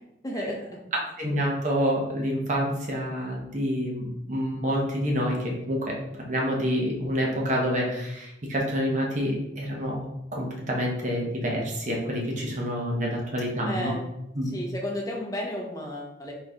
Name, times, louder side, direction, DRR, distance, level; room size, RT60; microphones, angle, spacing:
voice 1, 0.2-0.6 13.6-14.0 14.5-16.3, equal, 20° left, -1 dB, 0.8 m, -32 dB
voice 2, 1.2-6.0 6.3-10.0 10.3-13.9 14.4-14.5, equal, 40° right, -1 dB, 1.0 m, -27 dB
4.1 x 3.1 x 3.6 m, 0.85 s
head